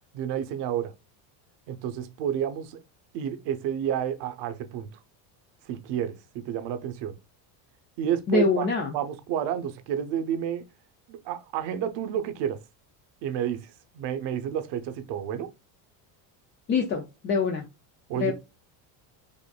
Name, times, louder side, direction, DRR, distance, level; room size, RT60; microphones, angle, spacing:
voice 1, 0.1-0.9 1.7-2.8 3.1-4.9 5.7-7.2 8.0-10.6 11.1-12.6 13.2-15.5 18.1-18.3, right 9 dB, 55° right, 0.7 m, -30 dB
voice 2, 8.3-8.9 16.7-17.6 18.2-18.3, left 4 dB, 25° left, 0.3 m, -24 dB
5.1 x 2.5 x 2.2 m
cardioid pair, 140°, 49 cm